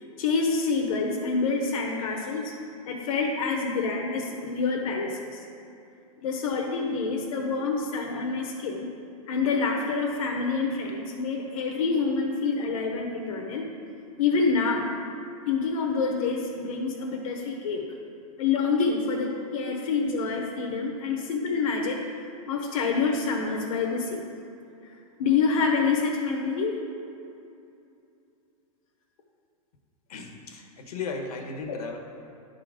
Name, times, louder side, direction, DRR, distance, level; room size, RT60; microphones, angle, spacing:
voice 1, 0.2-2.6 2.9-5.4 6.2-8.9 9.3-13.7 14.2-14.9 15.5-17.9 18.4-24.2 25.2-26.8, left 4 dB, 65° left, 0 dB, 1.0 m, -27 dB
voice 2, 30.1-32.0, left 4 dB, 80° left, 3 dB, 1.2 m, -36 dB
11.0 x 3.8 x 4.9 m, 2.6 s
hypercardioid pair, 145°, 19 cm